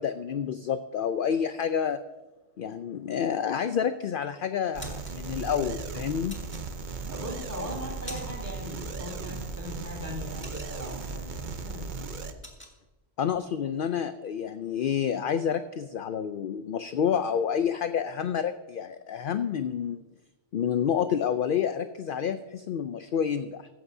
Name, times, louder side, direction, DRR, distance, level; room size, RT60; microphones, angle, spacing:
voice 1, 0.0-2.0 2.6-6.4 13.2-20.0 20.5-23.7, left 8 dB, 60° left, 10 dB, 0.6 m, -29 dB
sound 1, 3.8-4.2 4.5-5.2 6.3-7.1 7.6-8.6 8.8-9.1 9.5-11.2 11.5-11.7 12.0-12.8, equal, 10° left, 1.8 m, -45 dB
sound 2, 4.7-12.3, right 4 dB, 45° right, 0.9 m, -37 dB
voice 2, 7.1-11.9, left 1 dB, 15° right, 0 dB, 2.9 m, -39 dB
15.5 x 14.0 x 2.7 m, 1.1 s
omnidirectional pair, 1.2 m